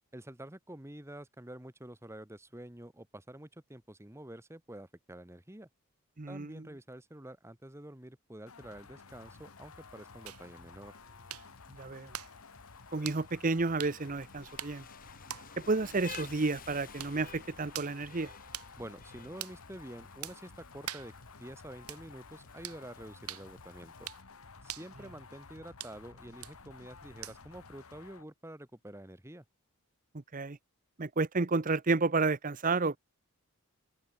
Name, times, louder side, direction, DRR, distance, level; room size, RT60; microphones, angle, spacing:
voice 1, 0.1-5.7 6.3-11.0 18.8-21.1 21.4-24.1 24.6-29.4, right 1 dB, 10° right, 1.2 m, -48 dB
voice 2, 6.2-6.7 11.7-12.1 12.9-14.8 15.6-18.3 30.3-30.6 31.0-33.0, right 3 dB, 35° right, 0.7 m, -31 dB
sound 1, 8.5-28.3, left 4 dB, 70° left, 1.4 m, -53 dB
Rain, 9.1-24.2, left 6 dB, 40° left, 4.0 m, -55 dB
sound 2, 10.3-27.6, right 11 dB, 85° right, 3.6 m, -48 dB
head